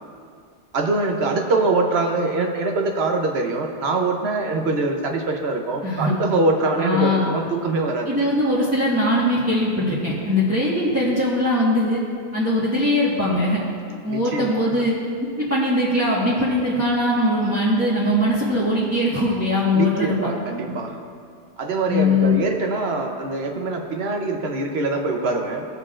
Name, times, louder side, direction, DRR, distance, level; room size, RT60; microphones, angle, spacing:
voice 1, 0.7-8.3 14.1-14.8 19.7-21.0 21.6-25.6, right 3 dB, 70° right, 3 dB, 1.0 m, -23 dB
voice 2, 5.8-6.1 6.8-7.3 8.1-12.0 12.3-13.6 14.0-14.9 15.2-20.3 21.9-22.4, left 1 dB, 15° right, -9 dB, 1.3 m, -21 dB
18.0 x 6.7 x 2.5 m, 2.3 s
omnidirectional pair, 1.2 m